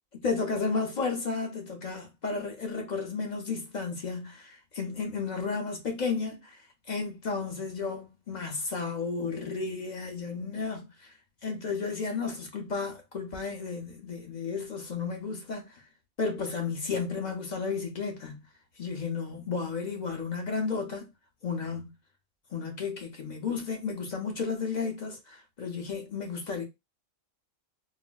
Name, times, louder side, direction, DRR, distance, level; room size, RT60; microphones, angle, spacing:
voice 1, 0.2-6.6 6.9-11.1 11.4-15.8 16.2-18.4 18.8-21.1 21.4-21.9 22.5-26.6, left 4 dB, 50° left, 0.5 m, -33 dB
4.0 x 2.1 x 2.2 m
omnidirectional pair, 1.5 m